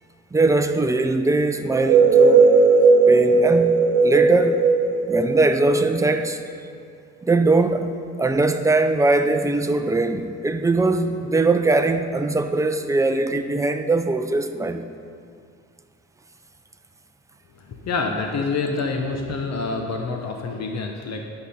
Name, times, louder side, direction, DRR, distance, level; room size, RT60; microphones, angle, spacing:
voice 1, 0.3-2.5 3.1-4.6 5.1-6.4 7.2-14.9, right 3 dB, 10° right, 7 dB, 0.6 m, -21 dB
sound 1, 1.7-6.3, right 4 dB, 75° right, 1.0 m, -16 dB
voice 2, 17.8-21.2, left 3 dB, 60° left, 3 dB, 0.9 m, -26 dB
12.0 x 5.9 x 4.2 m, 2.3 s
cardioid pair, 90°, 30 cm